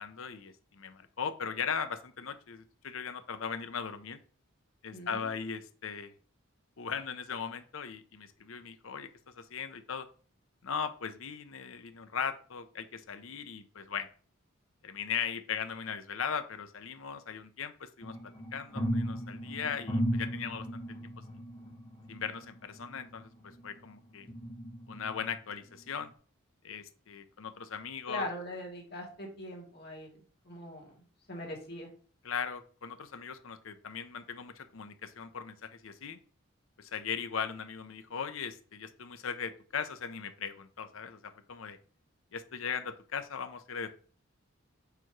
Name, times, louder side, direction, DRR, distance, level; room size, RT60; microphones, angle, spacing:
voice 1, 0.0-4.2 4.8-6.1 6.8-9.1 9.4-10.1 10.6-14.1 14.8-20.8 22.1-24.3 24.9-26.1 26.6-28.3 32.2-36.2 36.8-41.8 42.3-43.9, left 6 dB, 75° left, 10 dB, 0.7 m, -38 dB
voice 2, 4.9-5.3 28.1-30.2 30.4-30.9 31.3-31.9, left 1 dB, 50° left, -1 dB, 2.0 m, -41 dB
sound 1, 18.0-23.8 24.3-25.4 25.9-26.0, equal, 25° left, 0.9 m, -36 dB
6.7 x 3.0 x 4.6 m, 0.42 s
head